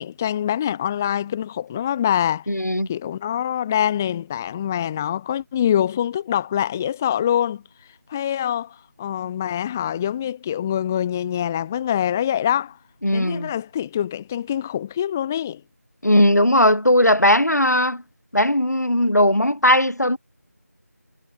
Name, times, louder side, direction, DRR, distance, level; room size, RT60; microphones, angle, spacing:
voice 1, 0.0-2.5 2.9-7.6 8.1-12.8 13.1-15.6, left 10 dB, 10° left, 1.1 m, -24 dB
voice 2, 2.5-2.9 13.0-13.5 16.0-18.0 18.3-20.2, left 1 dB, 80° left, 4.6 m, -18 dB
figure-of-eight pair, 170°, 9 cm